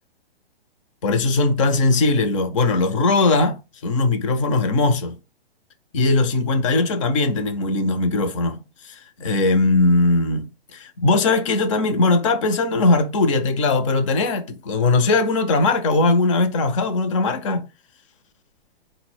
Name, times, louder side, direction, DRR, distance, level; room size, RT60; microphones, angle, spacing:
voice 1, 1.0-5.2 5.9-17.7, left 3 dB, 30° left, 0.5 m, -20 dB
3.9 x 2.1 x 4.3 m
figure-of-eight pair, 120°, 31 cm